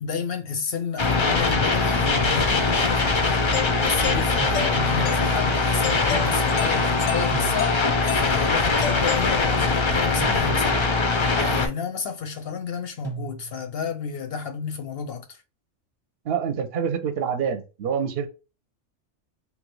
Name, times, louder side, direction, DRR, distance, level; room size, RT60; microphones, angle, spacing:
voice 1, 0.0-10.8 11.4-15.4, left 6 dB, 65° left, 0.7 m, -31 dB
sound 1, 1.0-11.7, left 3 dB, 45° left, 0.3 m, -22 dB
Doorbell, 3.5-9.9, left 8 dB, 90° left, 1.0 m, -33 dB
sound 2, 4.4-5.2 7.3-8.1 10.2-11.0 13.0-13.8, right 8 dB, 15° right, 1.0 m, -37 dB
voice 2, 16.2-18.3, right 7 dB, 60° right, 0.8 m, -26 dB
3.0 x 2.5 x 3.1 m
omnidirectional pair, 1.2 m